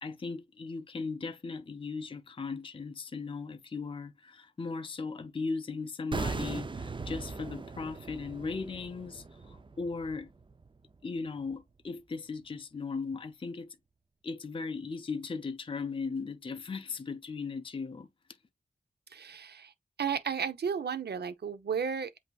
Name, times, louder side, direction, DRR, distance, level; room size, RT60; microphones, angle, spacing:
voice 1, 0.0-10.3 11.0-13.8 14.2-18.1, left 4 dB, 30° left, 0.5 m, -37 dB
sound 1, 6.1-11.1 11.4-11.6, right 4 dB, 30° right, 0.5 m, -39 dB
voice 2, 19.1-19.7 20.0-22.2, right 7 dB, 70° right, 0.7 m, -33 dB
7.9 x 2.7 x 2.3 m
wide cardioid pair, 110°, 17 cm